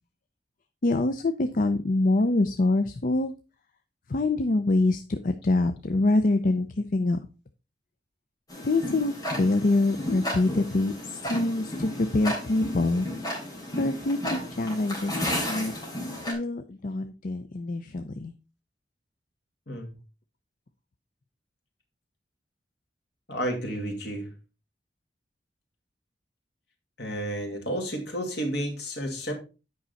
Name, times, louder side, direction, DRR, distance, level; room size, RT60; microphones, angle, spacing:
voice 1, 0.8-3.3 4.1-7.2 8.6-13.1 13.8-15.7 16.3-18.3, left 2 dB, 50° left, 0.6 m, -25 dB
Tick-tock, 8.5-16.3, left 1 dB, 20° left, 3.6 m, -33 dB
voice 2, 23.3-24.3 27.0-29.3, equal, 70° left, 2.3 m, -31 dB
8.8 x 5.5 x 4.0 m
head